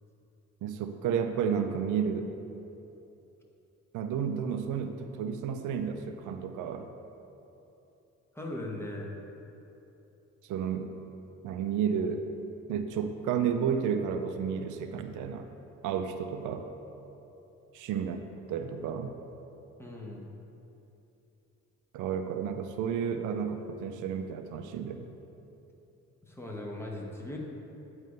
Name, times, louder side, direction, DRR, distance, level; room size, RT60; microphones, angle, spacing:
voice 1, 0.6-2.3 3.9-6.9 10.4-10.9 11.4-12.2 12.7-15.5 15.8-16.7 17.7-19.1 21.9-25.1, right 7 dB, 85° right, 7 dB, 0.5 m, -32 dB
voice 2, 8.3-9.1 19.8-20.2 26.3-27.4, left 1 dB, 10° left, -2 dB, 1.1 m, -38 dB
9.2 x 3.2 x 5.2 m, 2.9 s
cardioid pair, 90°, 30 cm